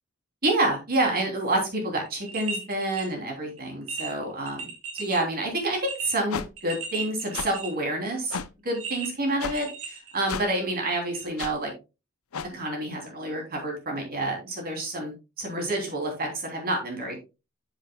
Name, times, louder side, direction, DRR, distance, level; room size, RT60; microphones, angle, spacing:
voice 1, 0.4-8.4 8.6-11.7 12.5-17.2, right 1 dB, 45° right, 2 dB, 3.2 m, -28 dB
sound 1, 2.1-3.1 3.5-3.6 3.9-5.2 5.7-7.9 8.7-10.5 11.1-11.2, right 4 dB, 65° right, 2.1 m, -36 dB
sound 2, 6.3-6.5 7.3-7.5 8.3-8.5 9.4-9.6 10.3-10.5 11.4-11.5 12.3-12.5, left 6 dB, 70° left, 0.7 m, -32 dB
10.0 x 8.3 x 2.3 m, 0.27 s
head